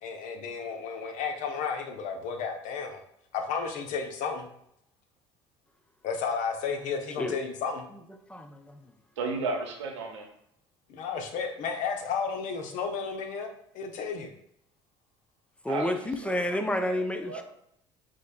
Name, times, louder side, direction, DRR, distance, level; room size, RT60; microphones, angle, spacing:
voice 1, 0.0-3.0 3.3-4.5 6.0-7.9 10.9-14.3, left 5 dB, 55° left, 4 dB, 0.7 m, -33 dB
voice 2, 8.3-8.9 15.6-17.4, left 1 dB, 10° left, 6 dB, 0.5 m, -30 dB
voice 3, 9.2-10.2 15.7-17.4, right 3 dB, 80° right, 2 dB, 0.8 m, -34 dB
5.0 x 3.7 x 2.2 m, 0.72 s
hypercardioid pair, 60°, 15 cm